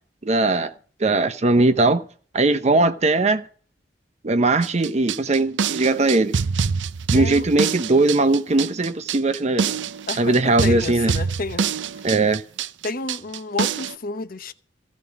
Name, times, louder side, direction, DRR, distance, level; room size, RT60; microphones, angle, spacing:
voice 1, 0.2-0.7 1.0-2.0 2.3-3.4 4.2-6.4 7.1-9.8 10.2-11.1 12.0-12.4, right 2 dB, 35° right, 0.7 m, -19 dB
drums beat, 4.6-14.0, right 6 dB, 75° right, 0.5 m, -25 dB
voice 2, 7.1-7.5 10.1-12.0 12.8-14.5, left 3 dB, 50° left, 0.9 m, -31 dB
15.5 x 5.3 x 9.7 m
head